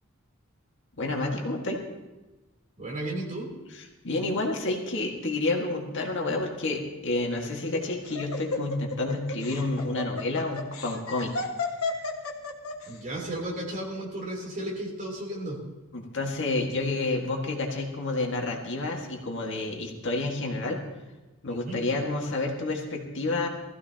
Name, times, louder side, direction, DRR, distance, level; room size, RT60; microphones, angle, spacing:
voice 1, 1.0-1.8 4.0-11.3 15.9-20.8 21.4-23.5, left 2 dB, 60° left, 0 dB, 1.9 m, -29 dB
voice 2, 2.8-3.5 12.9-15.6 21.5-21.9, right 1 dB, 35° right, -2 dB, 3.4 m, -34 dB
Laughter, 7.4-12.9, left 3 dB, 80° left, 1.6 m, -33 dB
20.0 x 14.5 x 2.9 m, 1.1 s
head